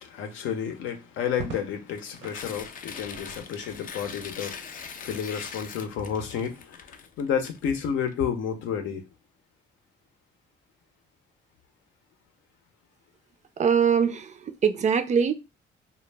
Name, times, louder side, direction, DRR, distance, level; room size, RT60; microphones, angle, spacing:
voice 1, 0.0-9.0, left 7 dB, 85° left, 0.6 m, -31 dB
Crackle, 1.3-2.5 4.1-4.6, right 4 dB, 90° right, 0.8 m, -41 dB
Tearing, 1.9-8.1, left 6 dB, 45° left, 0.4 m, -42 dB
voice 2, 13.6-15.3, right 7 dB, 35° right, 0.4 m, -23 dB
2.1 x 2.1 x 3.2 m
cardioid pair, 90°, 20 cm